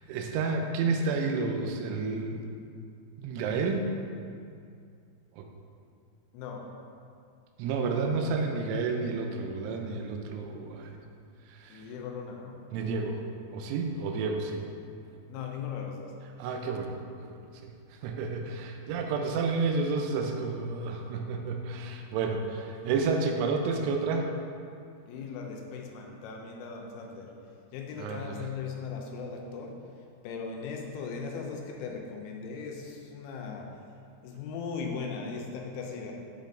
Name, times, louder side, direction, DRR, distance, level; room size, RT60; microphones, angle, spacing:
voice 1, 0.1-2.4 3.2-3.9 5.4-5.5 7.6-11.0 11.5-11.8 12.7-13.2 13.5-14.6 16.4-16.9 17.2-17.4 18.0-24.3 28.0-28.4, right 4 dB, 90° right, 3 dB, 3.0 m, -30 dB
voice 2, 6.3-6.7 11.7-12.6 15.3-16.2 25.1-27.4 27.7-29.8 30.2-33.8 34.2-36.1, left 5 dB, 90° left, 1 dB, 3.1 m, -38 dB
8.3 x 5.2 x 2.5 m, 2.4 s
omnidirectional pair, 5.3 m